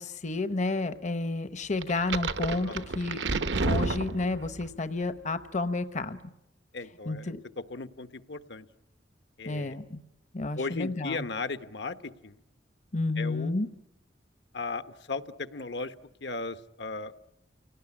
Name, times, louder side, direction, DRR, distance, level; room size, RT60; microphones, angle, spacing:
voice 1, 0.0-3.2 3.6-6.2 7.1-7.4 9.5-10.0 10.3-11.3 12.9-13.7, left 2 dB, 40° left, 11 dB, 0.9 m, -31 dB
sound 1, 1.8-4.7, right 3 dB, 70° right, 1.0 m, -30 dB
voice 2, 6.7-8.7 9.4-9.8 10.6-12.0 12.2-12.4 13.2-13.7 14.5-15.9 16.2-17.1, left 3 dB, 65° left, 11 dB, 1.1 m, -36 dB
29.5 x 18.0 x 9.8 m, 0.92 s
head